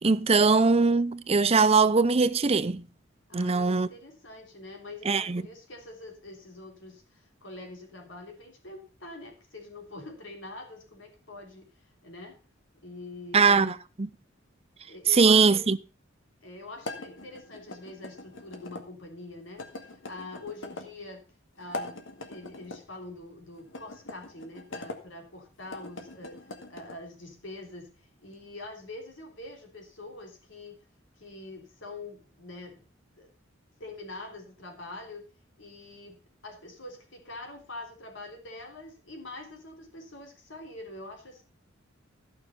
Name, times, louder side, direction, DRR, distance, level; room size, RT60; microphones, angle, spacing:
voice 1, 0.0-2.9 3.3-3.9 5.1-5.4 13.3-14.1 15.1-15.8, right 4 dB, 30° right, 0.6 m, -21 dB
voice 2, 3.3-12.4 12.8-13.7 14.8-15.7 16.4-21.3 21.6-30.9 31.2-32.9 33.2-33.3 33.8-35.3 35.6-36.2 36.4-41.4, left 2 dB, 70° left, 3.5 m, -44 dB
sound 1, 16.8-18.8 19.6-20.9 21.6-22.8 23.7-25.0 25.6-27.0, left 2 dB, 90° left, 1.9 m, -41 dB
14.5 x 6.3 x 5.5 m
head